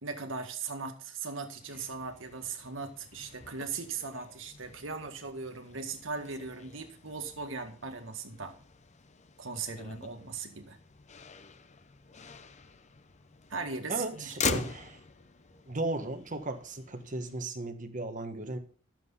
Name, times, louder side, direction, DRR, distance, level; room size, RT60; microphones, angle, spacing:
voice 1, 0.0-8.6 9.4-10.8 13.5-14.3, right 4 dB, 70° right, 5 dB, 1.8 m, -38 dB
Motor vehicle (road), 1.6-17.4, left 5 dB, 35° left, 0.8 m, -43 dB
voice 2, 13.9-15.0 15.7-18.6, right 2 dB, 40° right, 8 dB, 1.4 m, -36 dB
12.0 x 7.7 x 5.5 m, 0.41 s
head